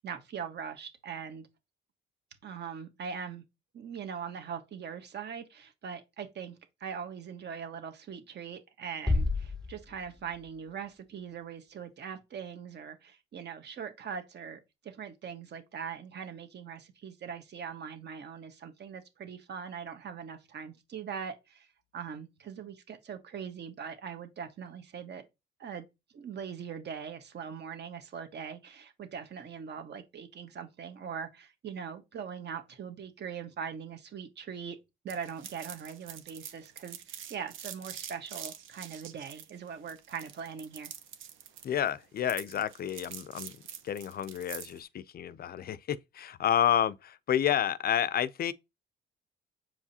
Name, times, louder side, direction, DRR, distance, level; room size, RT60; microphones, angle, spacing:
voice 1, 0.0-1.5 2.4-3.4 3.7-6.5 6.8-21.7 21.9-25.2 25.6-25.8 26.1-34.8 35.0-37.0 37.3-40.9, right 7 dB, 60° right, 1.3 m, -41 dB
sound 1, 9.1-11.0, left 2 dB, 5° left, 0.6 m, -32 dB
sound 2, 35.1-44.8, right 9 dB, 80° right, 1.0 m, -45 dB
voice 2, 41.6-43.6 43.8-48.5, left 10 dB, 50° left, 0.4 m, -30 dB
7.3 x 4.8 x 2.8 m
cardioid pair, 90°, 20 cm